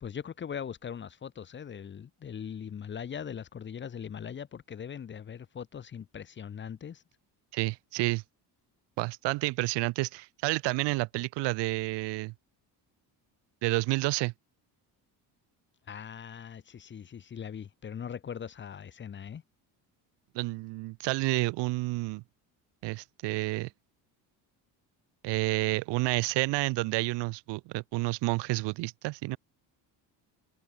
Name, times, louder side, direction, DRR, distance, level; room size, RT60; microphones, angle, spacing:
voice 1, 0.0-7.0 15.9-19.4, left 8 dB, 25° left, 1.0 m, -40 dB
voice 2, 7.5-8.2 9.0-12.3 13.6-14.3 20.3-22.2 22.8-23.7 25.2-29.4, right 22 dB, 80° right, 0.9 m, -30 dB
cardioid pair, 150°, 41 cm